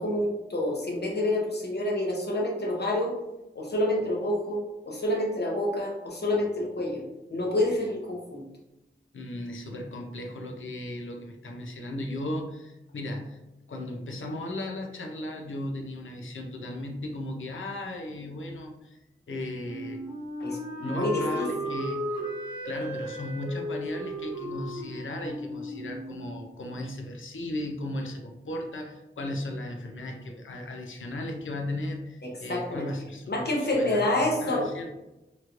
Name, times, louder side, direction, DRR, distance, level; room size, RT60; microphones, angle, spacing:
voice 1, 0.0-3.1 3.5-7.0 7.3-8.4 20.4-21.4 32.2-32.9 33.3-34.7, left 1 dB, 55° left, -2 dB, 0.8 m, -28 dB
voice 2, 9.1-13.4 13.7-19.0 19.3-20.0 20.4-20.5 20.8-22.0 22.6-34.9, left 1 dB, 80° left, 3 dB, 0.5 m, -36 dB
Wind instrument woodwind instrument, 19.6-26.4, equal, 20° right, 1.1 m, -35 dB
3.0 x 2.9 x 2.4 m, 0.98 s
wide cardioid pair, 80°, 20 cm